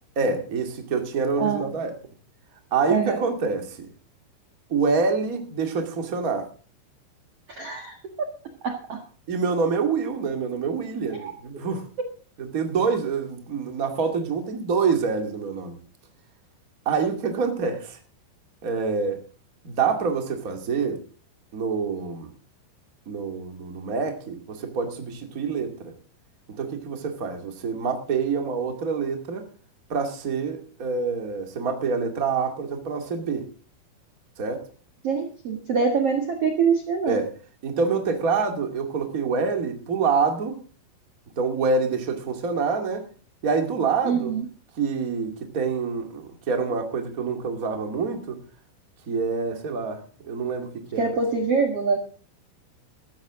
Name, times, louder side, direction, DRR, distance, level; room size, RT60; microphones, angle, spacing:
voice 1, 0.1-1.9 2.7-3.9 4.7-6.5 9.3-11.9 12.4-15.8 16.8-18.0 18.6-19.2 19.6-21.0 21.5-22.3 23.0-25.9 26.5-29.4 29.9-33.4 34.4-34.6 37.1-37.3 37.6-40.6 41.3-43.0 43.4-44.3 44.7-48.4 49.1-51.2, right 5 dB, 35° right, 5 dB, 1.3 m, -26 dB
voice 2, 1.4-1.7 2.9-3.2 7.6-8.0 8.6-9.0 11.2-11.3 35.0-37.2 44.0-44.4 50.9-52.0, right 5 dB, 70° right, 4 dB, 1.4 m, -24 dB
15.5 x 13.5 x 3.8 m, 0.39 s
omnidirectional pair, 5.6 m